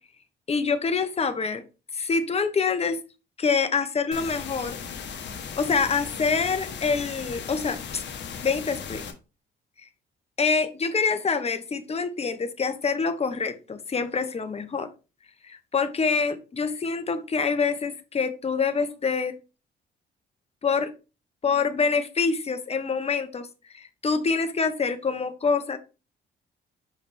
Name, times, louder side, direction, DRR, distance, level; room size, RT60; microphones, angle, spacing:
voice 1, 0.5-1.6 1.9-3.0 3.4-4.8 5.6-8.0 8.4-9.0 10.4-14.9 15.4-19.3 20.6-20.9 21.4-23.5 23.7-25.8, left 5 dB, 30° left, 9 dB, 1.0 m, -26 dB
sound 1, 4.1-9.1, left 6 dB, 65° left, 1.2 m, -37 dB
5.9 x 4.8 x 3.4 m, 0.31 s
cardioid pair, 90°, 20 cm